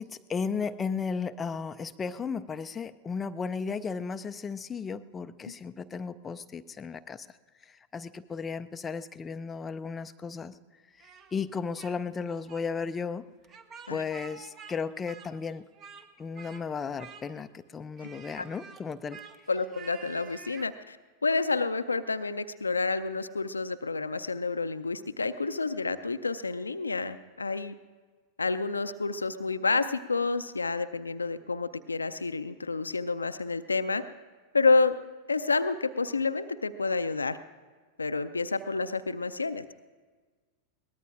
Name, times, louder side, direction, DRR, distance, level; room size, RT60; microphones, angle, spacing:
voice 1, 0.0-7.4 7.6-10.6 11.0-13.3 13.9-15.6 16.2-19.2, left 5 dB, 20° left, 10 dB, 0.4 m, -35 dB
Speech, 11.0-12.0 12.2-12.6 13.4-14.8 15.0-16.1 16.4-16.6 17.0-17.6 18.0-20.7, right 6 dB, 30° right, 0.8 m, -49 dB
voice 2, 19.5-21.0 21.2-27.7 28.4-34.0 34.5-35.0 35.3-37.4 38.0-39.6, left 3 dB, 80° left, 12 dB, 0.4 m, -29 dB
22.0 x 19.0 x 2.5 m, 1.4 s
figure-of-eight pair, 90°, 0 cm